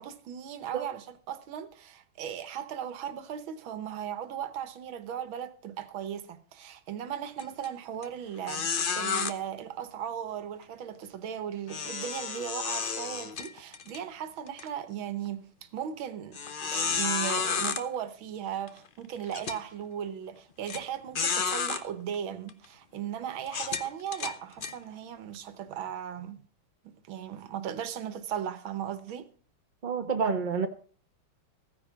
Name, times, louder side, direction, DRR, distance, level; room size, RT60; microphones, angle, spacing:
voice 1, 0.0-26.4 26.8-29.3, right 9 dB, 85° right, 1.9 m, -37 dB
sound 1, 7.4-7.7 8.0-8.1 8.5-9.3 11.7-14.0 14.5-14.6 15.3-15.4 16.3-17.8 18.7-18.8 19.3-19.6 20.7-20.8 21.2-21.8 22.5-22.7 23.5-24.7, left 5 dB, 45° left, 0.6 m, -31 dB
voice 2, 29.8-30.7, right 5 dB, 35° right, 0.8 m, -28 dB
15.0 x 9.9 x 5.1 m
omnidirectional pair, 2.1 m